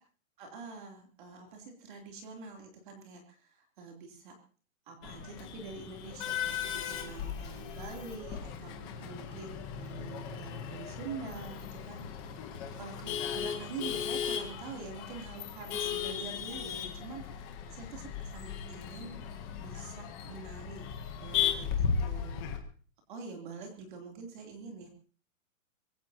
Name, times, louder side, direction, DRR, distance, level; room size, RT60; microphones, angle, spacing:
voice 1, 0.4-4.3 4.9-12.4 12.8-19.2 19.6-22.6 23.1-24.9, right 4 dB, 35° right, 2 dB, 3.0 m, -46 dB
Male speech man speaking / Laughter / Chatter, 5.0-22.6, left 8 dB, 10° left, 0.8 m, -36 dB
23.5 x 17.0 x 2.8 m, 0.40 s
hypercardioid pair, 175°, 41 cm